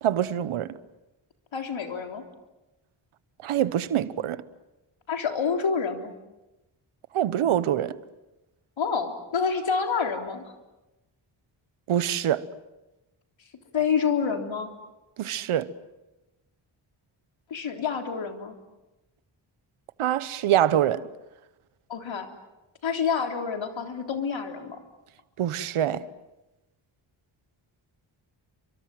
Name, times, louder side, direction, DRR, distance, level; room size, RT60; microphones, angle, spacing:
voice 1, 0.0-0.7 3.4-4.4 7.1-8.0 11.9-12.5 15.2-15.7 20.0-21.0 25.4-26.1, right 11 dB, 90° right, 1.2 m, -25 dB
voice 2, 1.5-2.2 5.1-6.1 8.8-10.5 13.7-14.7 17.5-18.6 21.9-22.3 22.8-24.8, left 6 dB, 70° left, 3.8 m, -28 dB
30.0 x 24.5 x 7.8 m
cardioid pair, 65°, 48 cm